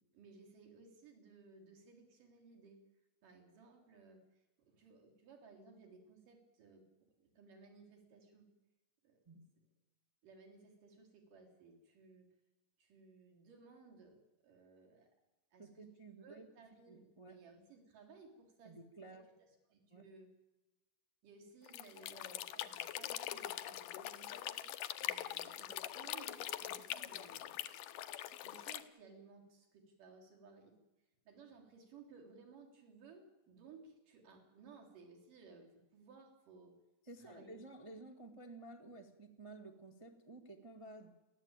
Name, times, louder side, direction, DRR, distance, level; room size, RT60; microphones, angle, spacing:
voice 1, 0.0-2.8 3.2-6.8 7.2-8.5 9.0-9.2 10.2-12.3 12.8-15.1 15.5-18.8 19.1-19.2 19.7-20.3 21.2-24.7 25.0-27.6 28.4-30.7 31.2-36.8 37.2-37.6, right 4 dB, 75° right, 2 dB, 5.2 m, -60 dB
voice 2, 15.6-16.5 16.9-17.4 18.6-19.3 19.9-20.1 37.0-41.1, right 2 dB, 25° right, 4 dB, 0.7 m, -53 dB
sound 1, 21.7-28.8, left 13 dB, 80° left, 2.6 m, -43 dB
29.5 x 12.0 x 8.9 m, 1.1 s
omnidirectional pair, 3.8 m